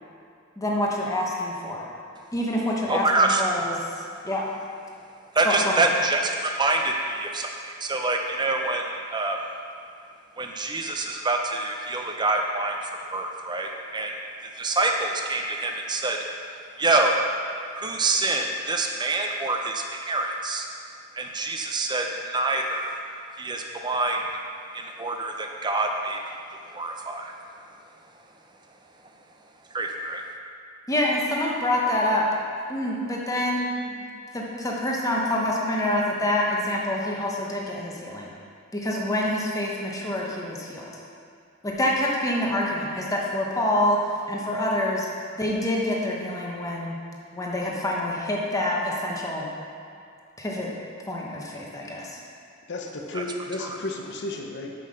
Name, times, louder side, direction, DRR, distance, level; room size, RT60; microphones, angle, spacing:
voice 1, 0.6-1.9 2.3-3.8 4.2-4.5 5.4-5.8 30.9-32.3 32.7-34.1 34.3-38.3 38.7-40.9 41.6-44.0 44.3-45.1 45.3-47.0 47.3-49.5 50.4-50.7 51.1-52.2, left 1 dB, 15° left, -3 dB, 1.0 m, -26 dB
voice 2, 2.9-3.4 5.3-9.5 10.4-14.1 14.4-16.2 16.8-17.2 17.7-20.7 21.1-23.0 23.4-24.3 24.7-27.3 29.7-30.2 53.1-53.2 53.6-53.8, right 2 dB, 20° right, 2 dB, 0.6 m, -26 dB
voice 3, 52.7-54.7, left 2 dB, 55° left, 2 dB, 0.8 m, -33 dB
5.7 x 5.5 x 6.5 m, 2.4 s
head